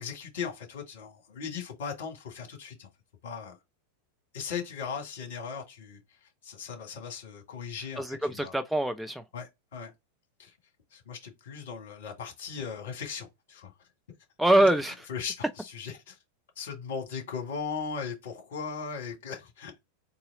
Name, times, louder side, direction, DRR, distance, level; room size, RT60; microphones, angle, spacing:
voice 1, 0.0-2.9 3.2-3.6 4.3-8.5 9.3-9.9 10.4-10.5 10.9-13.7 14.6-14.7 15.1-16.2 16.5-19.8, left 6 dB, 55° left, 1.6 m, -38 dB
voice 2, 8.0-9.2 14.4-15.0, right 1 dB, ahead, 0.3 m, -24 dB
3.9 x 2.8 x 3.8 m
figure-of-eight pair, 90°, 0 cm